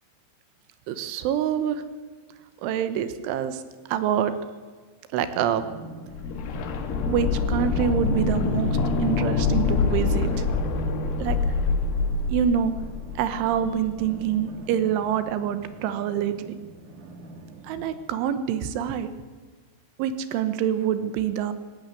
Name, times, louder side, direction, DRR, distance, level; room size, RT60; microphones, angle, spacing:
voice 1, 0.9-1.8 2.6-3.6 3.9-4.3 5.1-5.6 7.1-10.3 11.2-11.4 12.3-12.7 13.2-16.5 17.7-19.1 20.0-21.5, right 9 dB, 75° right, 12 dB, 3.4 m, -26 dB
sound 1, 5.6-17.9, right 2 dB, 55° right, 2.6 m, -45 dB
sound 2, 6.1-13.9 14.2-14.3, left 4 dB, 85° left, 4.6 m, -25 dB
18.5 x 18.0 x 8.4 m, 1.5 s
omnidirectional pair, 5.8 m